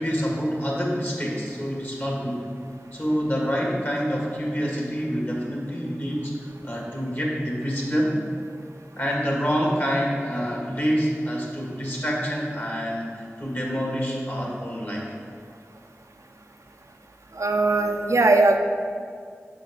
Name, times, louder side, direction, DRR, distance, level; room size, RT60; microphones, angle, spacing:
voice 1, 0.0-2.4 2.9-6.3 6.6-8.2 9.0-15.2, equal, 40° left, -3 dB, 1.5 m, -27 dB
voice 2, 17.3-18.6, right 2 dB, 85° right, 4 dB, 0.4 m, -19 dB
6.5 x 3.9 x 5.0 m, 2.2 s
wide cardioid pair, 45°, 5 cm